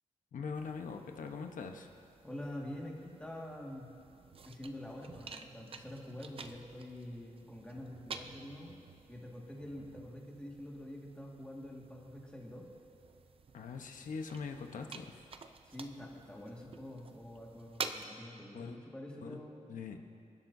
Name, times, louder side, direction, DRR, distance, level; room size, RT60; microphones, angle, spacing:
voice 1, 0.3-1.9 13.5-15.2 18.5-18.8 19.2-19.4 19.7-20.0, left 5 dB, 90° left, 4 dB, 1.1 m, -42 dB
sound 1, 0.5-18.1, right 5 dB, 45° right, 0.6 m, -50 dB
voice 2, 2.2-3.9 4.4-8.7 9.1-12.7 15.6-19.7, left 1 dB, 10° left, -3 dB, 1.9 m, -46 dB
27.0 x 12.0 x 2.7 m, 2.6 s
wide cardioid pair, 175°, 13 cm